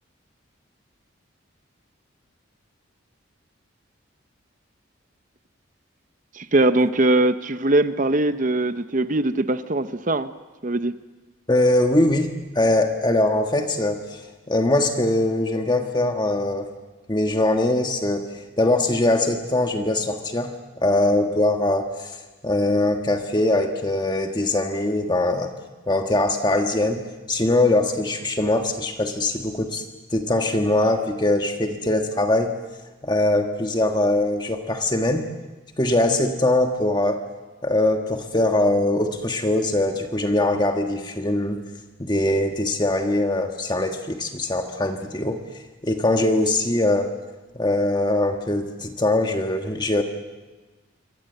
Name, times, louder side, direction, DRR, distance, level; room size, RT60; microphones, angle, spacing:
voice 1, 6.3-10.3 10.6-10.9, right 2 dB, 40° right, 11 dB, 0.8 m, -21 dB
voice 2, 11.5-14.2 14.5-16.7 17.1-18.2 18.6-22.2 22.4-25.5 25.9-27.0 27.3-29.9 30.1-32.5 33.0-35.3 35.8-37.2 37.6-41.6 42.0-45.4 45.8-47.1 47.5-50.0, left 1 dB, 20° left, 5 dB, 1.4 m, -22 dB
27.0 x 24.5 x 8.0 m, 1.3 s
head